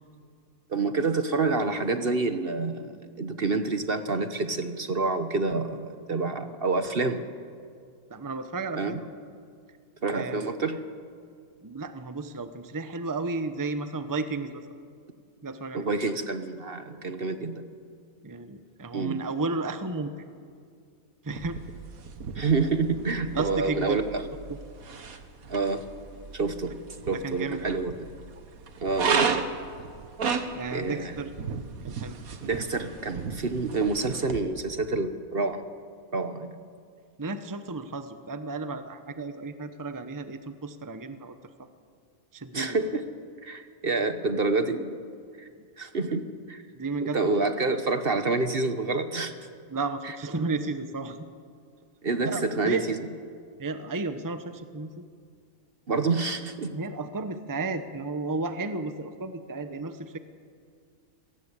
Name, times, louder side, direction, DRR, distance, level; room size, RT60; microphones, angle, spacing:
voice 1, 0.7-7.2 8.7-9.0 10.0-10.8 15.7-17.7 18.9-19.2 22.3-24.3 25.5-25.8 26.3-26.8 27.1-28.1 28.8-29.5 30.7-31.1 32.4-35.6 36.1-36.5 42.5-43.1 43.4-45.0 45.4-45.5 45.8-46.6 47.0-49.3 50.0-50.2 52.0-53.1 55.9-56.8, right 3 dB, 45° right, 9 dB, 1.2 m, -28 dB
voice 2, 8.1-9.0 10.1-10.5 11.6-14.6 15.4-15.8 18.2-20.1 21.2-21.6 23.3-24.0 24.5-24.6 27.1-27.8 30.5-31.3 31.8-32.2 37.2-41.3 42.3-42.8 46.7-47.5 49.7-51.2 52.2-52.8 53.6-54.9 56.7-60.2, right 3 dB, 15° right, 10 dB, 0.9 m, -33 dB
sound 1, 21.3-34.4, right 5 dB, 80° right, 1.8 m, -34 dB
26.5 x 18.0 x 8.3 m, 2.2 s
omnidirectional pair, 1.5 m